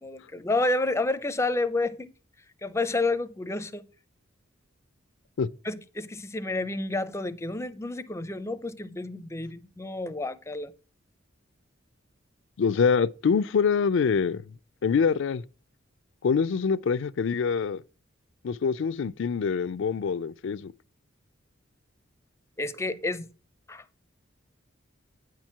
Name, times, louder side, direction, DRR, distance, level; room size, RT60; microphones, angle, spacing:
voice 1, 0.0-2.1 2.6-3.9 5.6-10.8 22.6-23.3 23.7-24.0, left 2 dB, 15° left, 0.5 m, -30 dB
voice 2, 12.6-14.4 14.8-15.4 16.2-17.8 18.4-20.7, left 6 dB, 65° left, 0.4 m, -25 dB
9.4 x 4.5 x 5.8 m
head